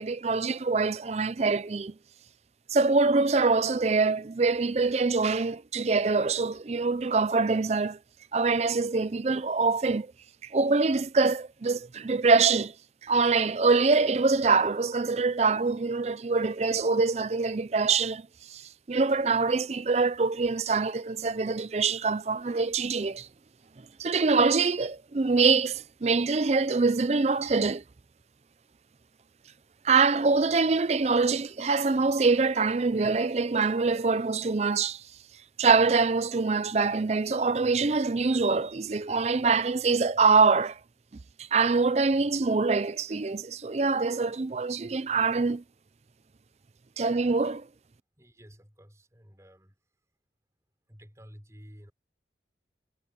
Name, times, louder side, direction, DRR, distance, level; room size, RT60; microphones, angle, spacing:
voice 1, 0.0-1.9 2.7-8.0 8.3-10.1 10.4-12.7 13.0-23.3 24.0-27.8 29.8-35.0 35.6-40.8 41.4-45.6 47.0-47.7, right 4 dB, 35° right, 0.5 m, -24 dB
voice 2, 48.2-49.8 50.9-51.9, equal, 15° right, 5.8 m, -51 dB
head